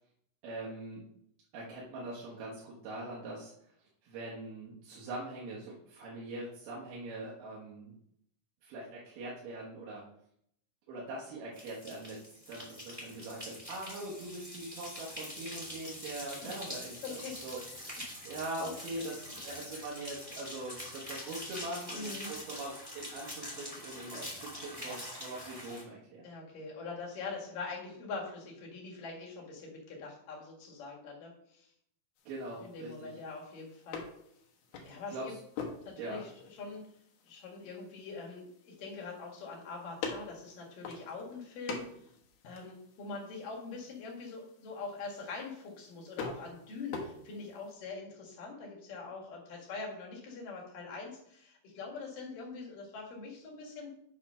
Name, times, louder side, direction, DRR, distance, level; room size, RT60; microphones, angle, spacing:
voice 1, 0.4-1.0 1.5-3.5 3.8-7.9 8.6-10.0 10.9-12.2 12.5-26.3 32.3-33.1 34.7-35.4 36.0-36.2, right 2 dB, 85° right, -6 dB, 3.4 m, -42 dB
sound 1, 11.5-25.8, left 1 dB, 10° right, 2.0 m, -44 dB
voice 2, 17.0-17.3 21.9-22.3 26.2-31.7 32.6-34.0 34.8-35.3 35.9-36.9 37.2-41.8 42.4-53.9, left 4 dB, 65° left, -2 dB, 3.5 m, -43 dB
sound 2, 32.2-47.7, left 5 dB, 85° left, 3.1 m, -46 dB
8.5 x 4.4 x 5.6 m, 0.72 s
omnidirectional pair, 4.2 m